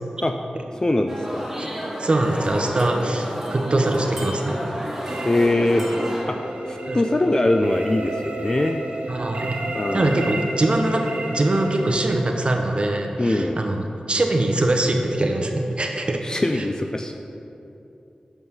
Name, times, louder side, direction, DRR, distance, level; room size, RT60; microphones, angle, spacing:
voice 1, 0.7-1.5 5.2-5.9 6.3-8.8 9.7-10.2 13.2-13.6 16.2-17.1, left 1 dB, 30° left, 4 dB, 0.4 m, -22 dB
sound 1, 1.1-6.2, equal, 15° right, 1.7 m, -31 dB
voice 2, 2.0-4.6 6.8-7.0 9.1-9.6 9.9-11.0 11.3-16.2 16.6-16.7, right 2 dB, 45° right, 3 dB, 0.8 m, -22 dB
sound 2, 5.1-11.9, right 2 dB, 80° right, 1.0 m, -32 dB
6.0 x 5.4 x 5.5 m, 2.8 s
cardioid pair, 50°, 2 cm